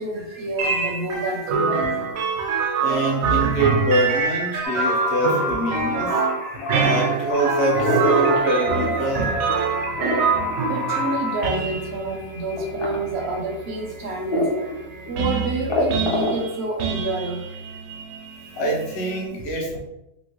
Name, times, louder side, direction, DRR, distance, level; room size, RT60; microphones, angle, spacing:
voice 1, 0.0-1.9 9.1-9.3 10.7-14.5 15.1-17.4, right 2 dB, 65° right, 1 dB, 0.7 m, -28 dB
sound 1, 0.6-19.3, right 5 dB, 85° right, 1.0 m, -26 dB
voice 2, 2.8-6.2 6.8-9.3 18.5-19.8, right 1 dB, 55° left, -2 dB, 1.0 m, -24 dB
sound 2, 4.6-11.5, left 2 dB, 85° left, 1.3 m, -30 dB
sound 3, 7.7-9.1 9.5-11.7 12.6-13.0 13.5-13.6 14.3-14.7 15.1-15.2 15.4-16.5, left 1 dB, 30° left, 0.6 m, -24 dB
3.0 x 2.7 x 3.0 m, 0.87 s
omnidirectional pair, 1.4 m